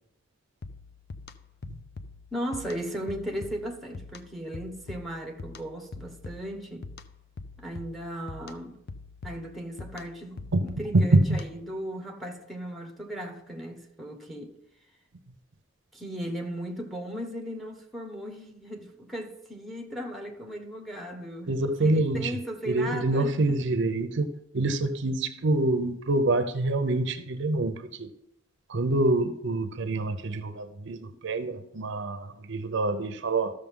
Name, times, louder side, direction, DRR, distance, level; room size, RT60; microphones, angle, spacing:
sound 1, 0.6-11.8, left 3 dB, 50° left, 0.5 m, -44 dB
voice 1, 2.3-6.9 7.6-8.8 9.2-14.6 15.9-23.6, equal, ahead, 1.0 m, -37 dB
voice 2, 10.9-11.4 21.5-22.4 22.7-24.3 24.5-28.1 28.7-33.5, right 2 dB, 60° right, 0.7 m, -26 dB
13.5 x 6.6 x 3.7 m
head